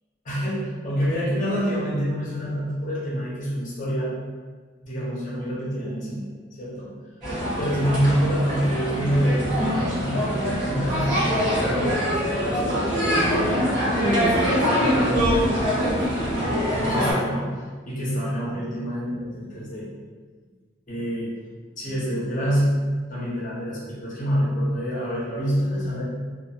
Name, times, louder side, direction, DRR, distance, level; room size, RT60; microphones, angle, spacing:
voice 1, 0.2-4.1 4.8-6.3 6.6-6.9 7.6-9.4 9.7-11.9 12.3-13.4 14.3-15.5 15.9-19.9 20.9-21.3 21.8-22.8 23.1-26.0, equal, 45° left, -6 dB, 0.8 m, -27 dB
sound 1, 7.2-17.1, equal, 45° right, 1.3 m, -23 dB
2.7 x 2.4 x 2.3 m, 1.4 s
head